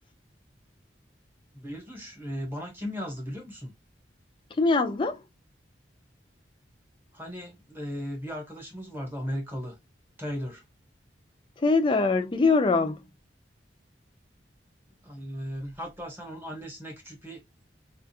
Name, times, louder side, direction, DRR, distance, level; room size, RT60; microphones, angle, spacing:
voice 1, 1.5-3.7 7.1-9.8 10.2-10.6 15.0-17.4, equal, 10° right, 0.9 m, -36 dB
voice 2, 4.6-5.2 11.6-13.0, left 3 dB, 25° left, 0.4 m, -23 dB
2.4 x 2.3 x 2.7 m
head